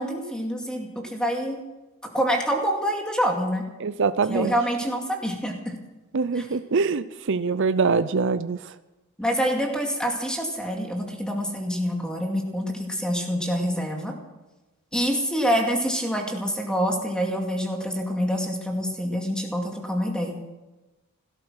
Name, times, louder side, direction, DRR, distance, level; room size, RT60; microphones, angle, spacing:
voice 1, 0.0-1.6 2.1-3.6 4.3-5.7 6.3-6.5 9.2-14.1 14.9-20.5, equal, 5° left, 1 dB, 2.4 m, -26 dB
voice 2, 3.8-4.5 6.1-8.6, right 4 dB, 55° right, 13 dB, 0.5 m, -24 dB
16.5 x 13.0 x 6.3 m, 1.1 s
head